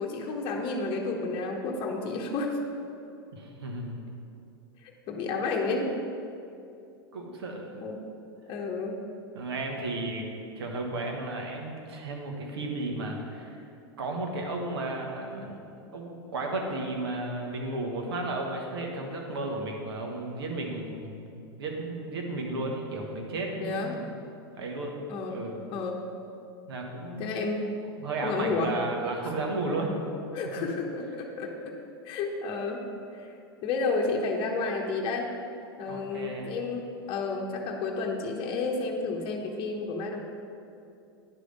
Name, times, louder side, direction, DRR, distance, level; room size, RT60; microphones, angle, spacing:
voice 1, 0.0-2.6 4.8-5.9 7.8-7.9 8.5-9.0 23.6-23.9 25.1-25.4 25.7-26.0 27.2-27.7 28.2-28.7 30.3-31.7 32.0-32.8 33.1-33.3 33.6-35.3 35.8-40.2, left 3 dB, 40° left, 0 dB, 0.9 m, -31 dB
voice 2, 3.3-4.0 7.1-7.8 9.3-10.3 10.6-13.6 14.0-15.6 15.9-24.0 24.5-25.0 25.3-25.6 26.7-27.5 28.0-29.9 30.6-30.7 35.9-36.6, right 2 dB, 80° right, 1 dB, 1.2 m, -34 dB
9.9 x 3.3 x 5.3 m, 2.6 s
hypercardioid pair, 110°, 13 cm